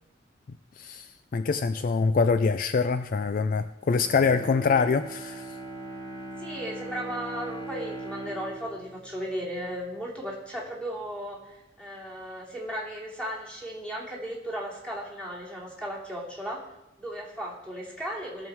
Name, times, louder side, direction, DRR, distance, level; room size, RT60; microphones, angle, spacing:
voice 1, 0.8-5.6, left 4 dB, 45° left, 0.4 m, -25 dB
Bowed string instrument, 3.9-10.2 10.6-10.7, right 2 dB, 25° left, 3.7 m, -40 dB
voice 2, 6.4-16.6 17.0-18.5, equal, 5° left, 2.8 m, -36 dB
17.5 x 7.1 x 4.7 m
head